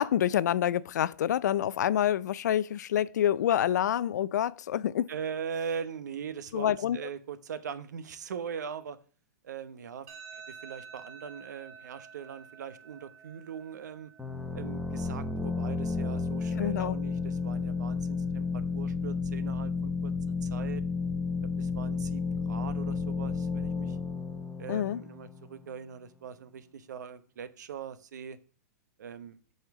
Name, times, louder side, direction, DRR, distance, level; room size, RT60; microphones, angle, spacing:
voice 1, 0.0-5.1 6.5-7.0 16.6-17.0 24.7-25.0, left 10 dB, 80° left, 0.4 m, -27 dB
voice 2, 5.1-9.0 9.4-10.1 10.3-14.1 14.5-20.1 20.4-20.8 21.6-24.0 24.6-28.4 29.0-29.4, right 7 dB, 90° right, 1.0 m, -41 dB
sound 1, 10.1-23.0, right 7 dB, 55° right, 2.4 m, -54 dB
sound 2, 14.2-25.7, left 4 dB, ahead, 0.8 m, -32 dB
8.4 x 4.3 x 6.9 m
supercardioid pair, 165°, 9 cm